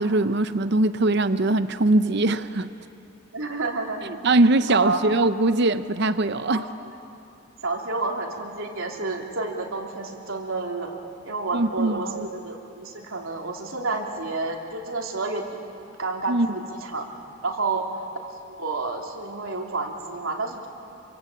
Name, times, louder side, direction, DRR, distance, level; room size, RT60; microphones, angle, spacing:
voice 1, 0.0-2.7 4.0-6.6 11.5-12.3 16.3-16.5, right 2 dB, 55° right, 11 dB, 0.7 m, -21 dB
voice 2, 3.3-4.2 4.7-5.0 6.5-6.6 7.6-11.0 11.2-15.6 16.0-17.1 17.4-17.9 18.4-20.7, right 3 dB, 85° right, 1 dB, 3.1 m, -30 dB
27.0 x 24.5 x 8.6 m, 2.6 s
head